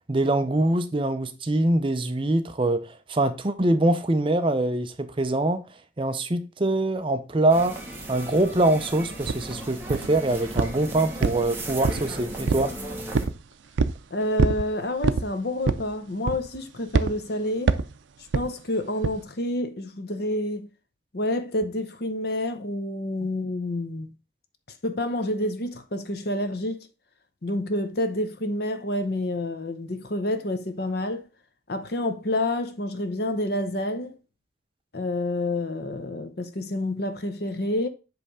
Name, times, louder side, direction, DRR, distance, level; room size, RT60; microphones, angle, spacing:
voice 1, 0.1-5.6 6.0-7.8 8.1-12.7, right 2 dB, 25° right, 0.5 m, -24 dB
sound 1, 7.5-13.3, right 1 dB, 10° right, 1.2 m, -36 dB
sound 2, 9.3-9.4 9.9-10.2 10.6-10.8 11.2-12.1 12.5-12.7 13.1-13.4 13.8-14.0 14.4-14.6 15.0-15.3 15.6-15.9 16.3-16.6 16.9-17.1 17.7-17.9 18.3-18.5 19.0-19.2, right 4 dB, 75° right, 0.5 m, -23 dB
voice 2, 14.1-17.8 18.3-20.7 21.1-24.1 24.8-26.9 27.4-31.2 31.7-34.1 34.9-37.9, left 1 dB, 55° left, 0.8 m, -28 dB
7.9 x 3.3 x 4.8 m
head